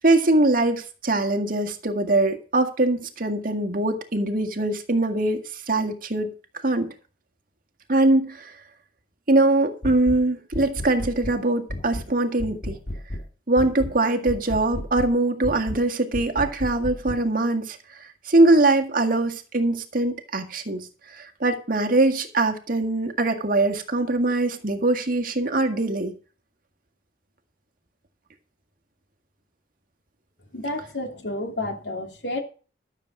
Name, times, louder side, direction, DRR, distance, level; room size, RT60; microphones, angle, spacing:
voice 1, 0.0-6.3 6.6-6.9 7.9-8.6 9.3-12.8 13.5-26.1, right 2 dB, 55° right, 1.9 m, -22 dB
sound 1, 9.8-10.2 10.5-11.4 11.7-12.1 12.4-13.3 13.6-14.0 14.3-15.1 15.4-15.8 16.1-17.2, left 1 dB, 50° left, 1.9 m, -33 dB
voice 2, 30.5-32.4, left 1 dB, 85° left, 2.7 m, -30 dB
13.0 x 7.3 x 6.1 m
head